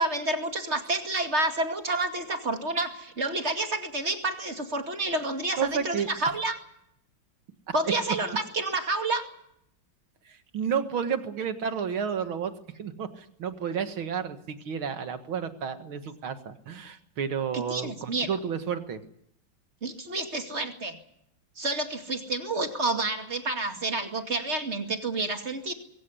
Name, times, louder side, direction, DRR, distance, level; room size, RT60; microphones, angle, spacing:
voice 1, 0.0-6.6 7.7-9.2 17.5-18.3 19.8-21.0 21.6-25.7, right 2 dB, 35° right, 5 dB, 2.6 m, -29 dB
voice 2, 5.6-6.1 10.3-12.5 12.8-19.0, right 7 dB, 85° right, 8 dB, 2.5 m, -31 dB
23.0 x 16.0 x 9.8 m, 0.74 s
omnidirectional pair, 2.2 m